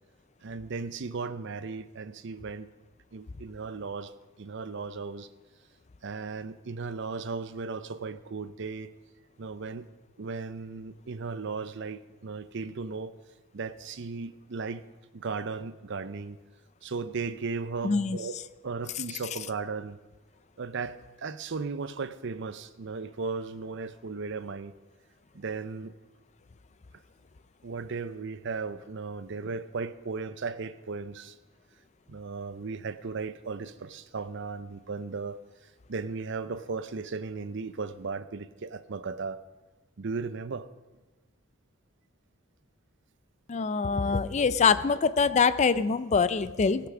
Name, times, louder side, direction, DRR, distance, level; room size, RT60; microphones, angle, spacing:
voice 1, 0.4-2.7 3.1-4.1 4.4-5.3 6.0-8.9 9.4-9.9 10.2-13.1 13.5-14.8 15.1-16.4 16.8-18.4 18.6-20.0 20.6-24.7 25.3-25.9 27.6-31.4 32.1-35.4 35.9-39.4 40.0-40.7, right 4 dB, 60° right, 13 dB, 0.6 m, -36 dB
voice 2, 17.8-18.2 43.5-46.9, left 5 dB, 35° left, 15 dB, 0.4 m, -24 dB
16.5 x 6.0 x 6.0 m, 1.2 s
head